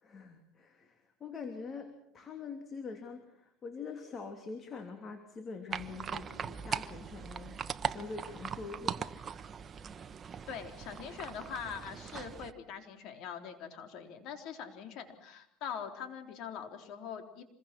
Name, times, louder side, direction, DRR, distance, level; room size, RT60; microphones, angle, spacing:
voice 1, 0.0-9.0, left 4 dB, 30° left, 6 dB, 2.9 m, -44 dB
sound 1, 5.7-12.5, right 7 dB, 30° right, 1.1 m, -40 dB
voice 2, 10.5-17.4, left 7 dB, 60° left, 6 dB, 3.8 m, -43 dB
26.5 x 22.5 x 6.1 m, 0.76 s
supercardioid pair, 125°, 0 cm